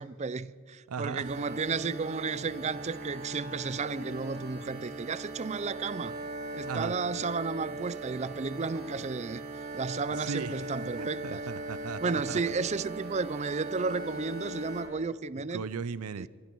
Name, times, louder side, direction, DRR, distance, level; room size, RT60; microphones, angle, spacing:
voice 1, 0.0-6.2 6.5-9.4 9.7-11.4 12.0-15.6 16.2-16.3, right 4 dB, 30° right, 0.4 m, -33 dB
voice 2, 0.9-1.3 6.7-6.9 10.1-10.7 11.0-12.4 15.5-16.3, right 5 dB, 90° right, 0.5 m, -37 dB
sound 1, 1.2-14.8, right 1 dB, 45° right, 6.0 m, -39 dB
26.0 x 24.5 x 4.6 m
head